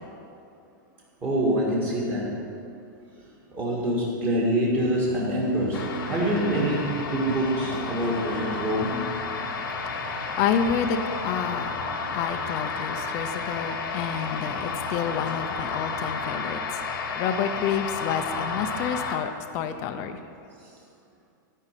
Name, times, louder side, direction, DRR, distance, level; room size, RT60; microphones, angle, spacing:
voice 1, 1.2-2.3 3.5-6.9 7.1-8.9, equal, 20° right, -5 dB, 1.9 m, -25 dB
sound 1, 4.8-16.3, right 3 dB, 65° right, 1.8 m, -41 dB
sound 2, 5.7-19.2, left 4 dB, 85° left, 1.3 m, -32 dB
voice 2, 9.9-11.7 12.1-20.2, left 7 dB, 25° left, 8 dB, 0.6 m, -29 dB
13.5 x 5.5 x 9.0 m, 2.5 s
supercardioid pair, 175°, 11 cm